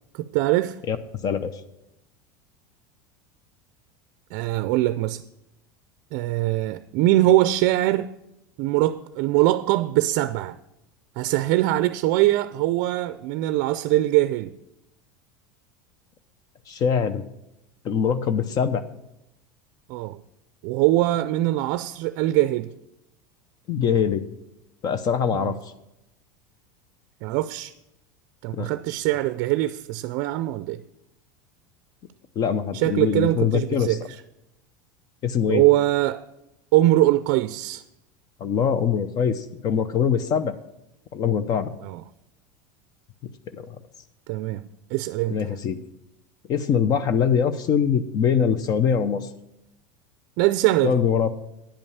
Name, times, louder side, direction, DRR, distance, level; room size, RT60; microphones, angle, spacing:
voice 1, 0.1-0.8 4.3-5.2 6.1-8.1 8.6-10.6 11.2-14.5 19.9-20.2 20.6-22.8 27.2-27.7 28.4-30.8 32.7-34.0 35.5-36.2 36.7-37.8 41.8-42.0 44.3-44.6 44.9-45.4 50.4-51.0, right 16 dB, 60° right, 0.4 m, -22 dB
voice 2, 16.7-17.2 17.8-18.8 23.7-24.2 24.8-25.5 28.5-28.7 32.4-34.0 35.2-35.6 38.4-40.5 41.1-41.7 43.5-43.8 45.3-45.8 46.5-49.3 50.8-51.4, left 7 dB, 40° left, 0.7 m, -23 dB
10.0 x 5.3 x 7.2 m
supercardioid pair, 115°, 10 cm